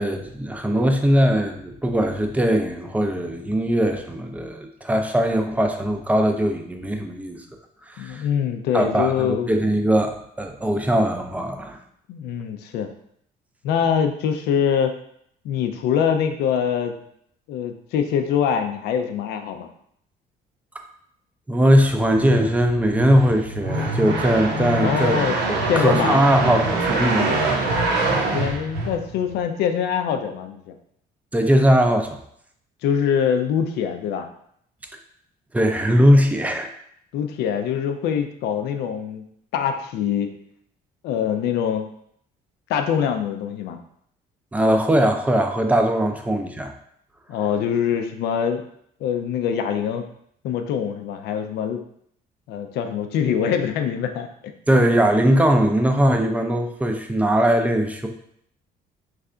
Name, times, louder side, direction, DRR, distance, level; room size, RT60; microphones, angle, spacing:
voice 1, 0.0-7.4 7.9-8.2 8.7-11.8 20.7-20.8 21.5-25.2 25.5-27.6 31.3-32.2 35.5-36.7 44.5-46.7 54.7-58.1, equal, 10° right, 5 dB, 0.4 m, -20 dB
voice 2, 8.0-9.5 12.1-12.9 13.6-14.9 15.4-17.0 17.5-19.7 24.8-25.4 25.7-26.2 28.3-30.7 32.8-34.2 37.1-39.2 39.5-40.3 41.0-41.9 42.7-43.8 47.3-48.6 49.0-50.0 50.4-51.8 52.5-54.3, left 8 dB, 75° left, 6 dB, 0.4 m, -24 dB
sound 1, 21.8-29.4, right 2 dB, 75° right, 0.8 m, -24 dB
3.2 x 2.4 x 3.7 m, 0.69 s
cardioid pair, 110°, 17 cm